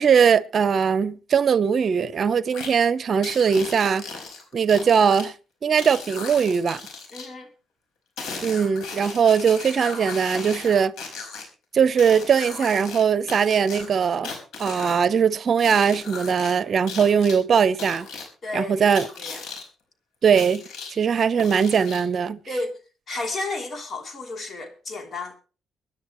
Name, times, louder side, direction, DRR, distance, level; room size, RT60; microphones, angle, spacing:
voice 1, 0.0-4.1 4.5-5.3 5.6-6.8 8.4-10.9 11.7-14.3 14.6-18.1 18.5-19.1 20.2-20.6 21.0-22.4, right 7 dB, 50° right, 0.8 m, -20 dB
sound 1, 2.5-2.7 3.2-5.3 5.8-7.3 8.2-11.4 12.0-13.0 13.3-15.0 15.6-16.5 16.9-17.4 17.8-18.3 19.0-19.6 20.4-20.9 21.4-22.2, left 4 dB, 80° left, 5.0 m, -36 dB
voice 2, 7.1-7.5 18.4-18.9 19.2-19.4 22.5-22.8 23.1-25.4, left 2 dB, 45° left, 3.3 m, -32 dB
24.0 x 10.5 x 3.1 m
cardioid pair, 90°, 0 cm